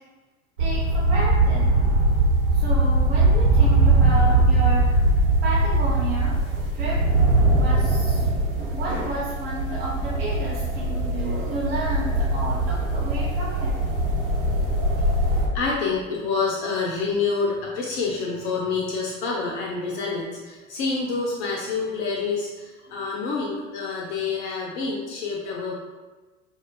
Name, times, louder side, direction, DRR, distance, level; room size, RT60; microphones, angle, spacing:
voice 1, 0.6-1.8 2.5-5.1 5.4-6.5 6.7-7.1 7.3-13.8, right 2 dB, 45° right, -6 dB, 0.6 m, -31 dB
sound 1, 0.6-15.5, right 2 dB, 75° right, 1.0 m, -21 dB
voice 2, 15.5-25.7, left 4 dB, 35° left, -2 dB, 0.5 m, -27 dB
4.5 x 2.3 x 2.2 m, 1.3 s
figure-of-eight pair, 80°, 40 cm